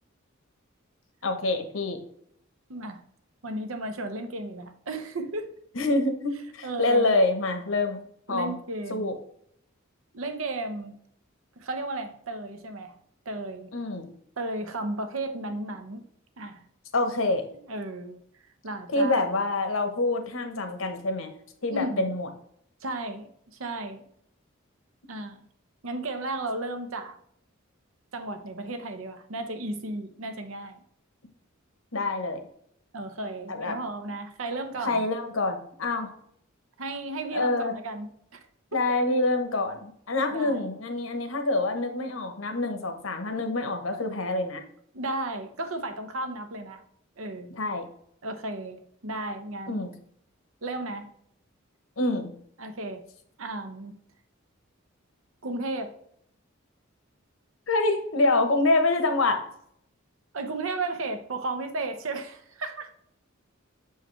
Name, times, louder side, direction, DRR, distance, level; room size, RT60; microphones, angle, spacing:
voice 1, 1.2-2.0 5.7-8.0 8.3-8.6 8.9-9.1 13.7-14.1 16.9-17.5 18.9-21.3 21.6-22.3 31.9-32.4 33.5-33.8 34.9-36.1 37.3-37.7 38.7-44.6 47.5-47.9 49.7-49.9 52.0-52.3 57.7-59.4, left 2 dB, 75° left, 1.0 m, -26 dB
voice 2, 2.7-3.0 3.4-5.5 6.6-7.1 8.3-9.1 10.1-10.9 11.6-13.0 13.3-13.7 14.4-16.0 16.4-16.6 17.7-18.2 18.6-19.2 21.7-22.1 22.8-24.0 25.1-25.4 25.8-27.2 28.1-30.8 32.9-35.0 36.8-38.4 40.3-40.6 44.9-46.8 47.2-47.5 48.2-49.8 50.6-51.1 52.6-53.0 53.4-54.0 55.4-55.9 60.3-62.9, right 2 dB, 80° right, 0.8 m, -34 dB
6.4 x 4.8 x 3.2 m
head